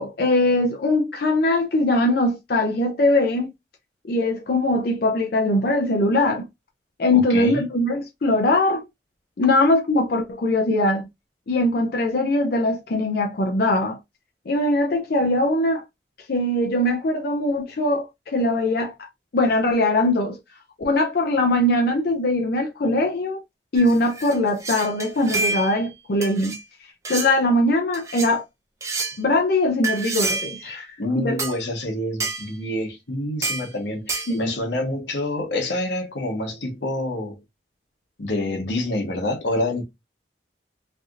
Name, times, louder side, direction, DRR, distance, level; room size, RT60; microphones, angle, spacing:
voice 1, 0.0-3.5 4.1-6.5 7.0-8.8 9.4-11.1 11.5-14.0 14.5-15.8 16.3-18.9 19.3-20.4 20.8-23.4 23.7-26.6 27.1-28.4 29.2-31.4 34.3-34.5, left 1 dB, 60° left, 0.5 m, -21 dB
voice 2, 7.1-7.6 30.6-37.4 38.2-39.8, left 1 dB, 90° left, 1.1 m, -27 dB
sound 1, 23.8-25.9 26.2-26.6 27.0-27.3 27.9-28.3 28.8-29.2 29.8-30.7 31.4-31.6 32.2-32.5 33.4-33.7 34.1-34.4, right 3 dB, 20° right, 0.5 m, -28 dB
3.3 x 2.7 x 2.3 m
head